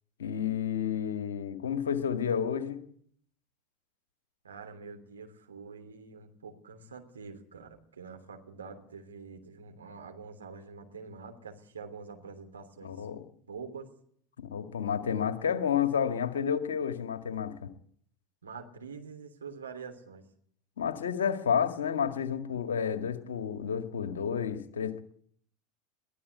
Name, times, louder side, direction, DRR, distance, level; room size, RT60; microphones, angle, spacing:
voice 1, 0.2-2.8 12.8-13.2 14.4-17.7 20.8-25.0, left 8 dB, 75° left, 8 dB, 1.8 m, -30 dB
voice 2, 4.4-13.1 13.5-13.9 18.4-20.2, right 5 dB, 80° right, 5 dB, 3.1 m, -46 dB
22.5 x 15.0 x 8.2 m, 0.63 s
figure-of-eight pair, 80°, 0 cm